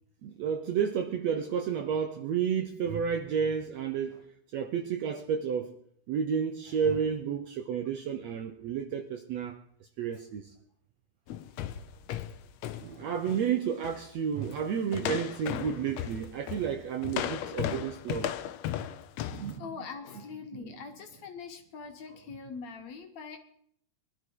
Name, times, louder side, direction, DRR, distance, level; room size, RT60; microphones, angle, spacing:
voice 1, 0.2-4.2 4.5-5.8 6.1-9.6 10.0-10.5 12.8-18.3 19.3-19.8 20.5-20.8, right 7 dB, 70° right, 1.7 m, -31 dB
sound 1, 11.3-13.5 13.8-14.1 14.4-14.7 14.9-19.5, left 11 dB, 90° left, 1.5 m, -36 dB
voice 2, 19.6-23.4, left 5 dB, 60° left, 2.2 m, -43 dB
22.5 x 12.0 x 4.7 m
omnidirectional pair, 4.0 m